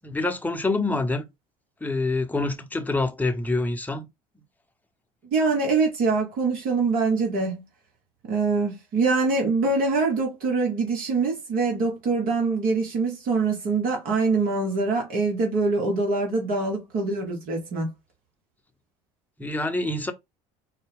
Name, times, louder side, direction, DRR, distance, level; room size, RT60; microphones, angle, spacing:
voice 1, 0.0-1.3 1.8-4.1 19.4-20.1, left 2 dB, 10° left, 0.8 m, -26 dB
voice 2, 5.3-7.6 8.3-17.9, right 3 dB, 60° right, 1.3 m, -24 dB
4.2 x 2.2 x 3.5 m
hypercardioid pair, 70°, 17 cm